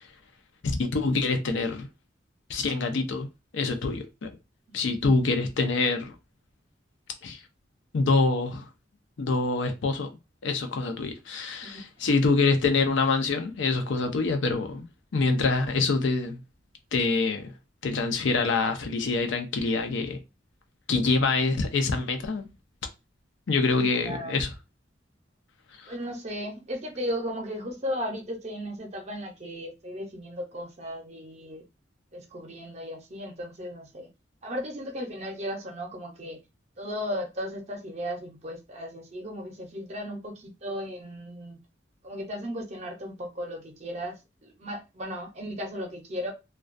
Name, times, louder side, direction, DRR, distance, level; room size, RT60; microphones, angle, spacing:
voice 1, 0.6-1.9 2.5-3.3 3.5-4.3 4.7-6.1 7.2-7.4 7.9-8.7 9.2-10.1 10.4-14.8 15.1-16.4 16.9-17.5 17.8-20.2 20.9-22.5 23.5-24.5 25.8-25.9, left 3 dB, 75° left, 0.5 m, -25 dB
voice 2, 23.7-24.4 25.9-31.6 32.1-34.1 34.4-36.4 36.8-41.6 42.0-46.3, equal, 35° right, 0.6 m, -36 dB
2.2 x 2.2 x 2.5 m
head